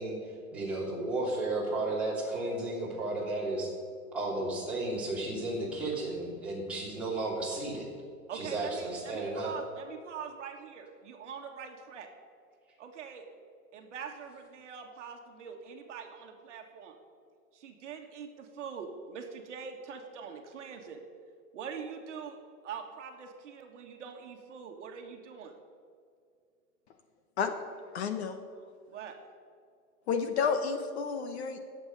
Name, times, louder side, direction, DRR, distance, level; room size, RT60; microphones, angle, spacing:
voice 1, 0.0-3.7 4.1-7.9 8.3-9.5, right 2 dB, 5° right, -8 dB, 3.1 m, -33 dB
voice 2, 8.3-12.1 12.8-13.3 13.7-17.0 17.5-21.0 21.5-22.4 22.6-25.6 28.9-29.2, right 6 dB, 55° right, 3 dB, 1.7 m, -43 dB
voice 3, 27.9-28.4 30.1-31.6, left 6 dB, 45° left, 8 dB, 1.1 m, -30 dB
20.0 x 8.1 x 5.4 m, 2.3 s
hypercardioid pair, 170°, 44 cm